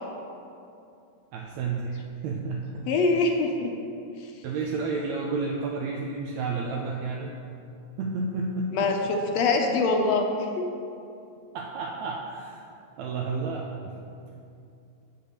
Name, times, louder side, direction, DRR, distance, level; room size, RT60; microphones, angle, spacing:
voice 1, 1.3-2.9 4.4-7.4 8.0-8.9 11.5-12.6 13.0-13.9, right 4 dB, 75° right, -1 dB, 1.9 m, -31 dB
voice 2, 2.9-3.7 8.7-10.7, left 3 dB, 70° left, 3 dB, 1.8 m, -24 dB
8.0 x 6.6 x 6.6 m, 2.6 s
omnidirectional pair, 3.4 m